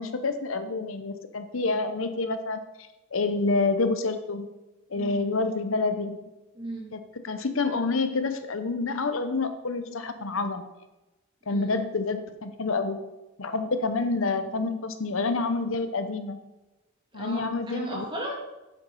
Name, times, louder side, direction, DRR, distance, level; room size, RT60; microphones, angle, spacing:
voice 1, 0.0-2.6 3.1-4.5 4.9-6.2 6.9-10.6 11.5-13.0 13.4-16.4 17.1-18.0, left 3 dB, 65° left, 9 dB, 0.8 m, -28 dB
voice 2, 4.9-5.3 6.5-6.9 11.5-11.7 17.1-18.3, right 1 dB, 20° right, -1 dB, 2.5 m, -35 dB
8.9 x 8.1 x 5.4 m, 1.0 s
head